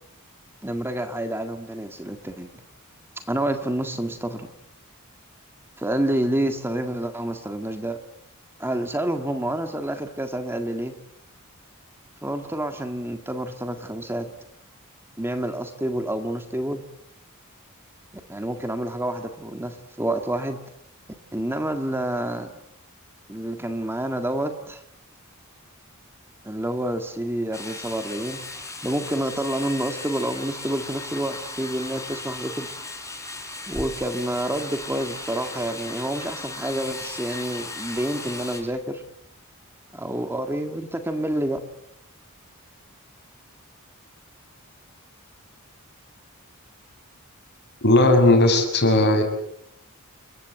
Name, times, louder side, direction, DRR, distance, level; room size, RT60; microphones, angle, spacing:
voice 1, 0.6-2.5 3.3-4.5 5.8-8.0 8.6-10.9 12.2-14.3 15.2-16.8 18.3-20.6 21.3-22.5 23.3-24.8 26.4-32.7 33.7-39.0 39.9-41.6, right 1 dB, 10° right, 6 dB, 1.8 m, -28 dB
sound 1, 27.5-38.6, left 2 dB, 15° left, 5.8 m, -36 dB
voice 2, 47.8-49.2, left 1 dB, 50° left, 5 dB, 7.0 m, -17 dB
30.0 x 23.5 x 8.2 m, 0.76 s
head